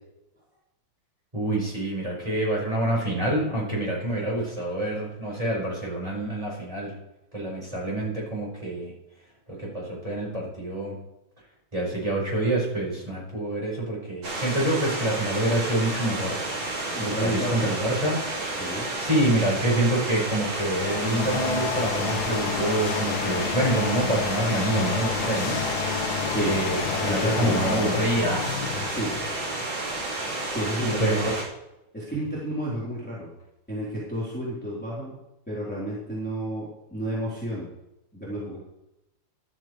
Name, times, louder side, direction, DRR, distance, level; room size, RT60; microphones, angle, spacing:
voice 1, 1.3-6.9 7.3-8.9 9.5-11.0 11.7-18.7 19.0-29.0 30.8-31.3, right 1 dB, 15° right, -5 dB, 5.2 m, -27 dB
sound 1, 14.2-31.4, right 2 dB, 90° right, 3.3 m, -31 dB
voice 2, 16.9-17.7 18.6-18.9 26.3-26.6 27.1-27.9 28.9-29.2 30.5-31.3 31.9-33.3 33.7-35.2 35.5-37.7 38.1-38.6, right 1 dB, 5° left, -8 dB, 3.8 m, -31 dB
sound 2, 20.4-29.6, left 8 dB, 65° left, 1.3 m, -30 dB
14.0 x 13.0 x 3.3 m, 0.92 s
omnidirectional pair, 2.0 m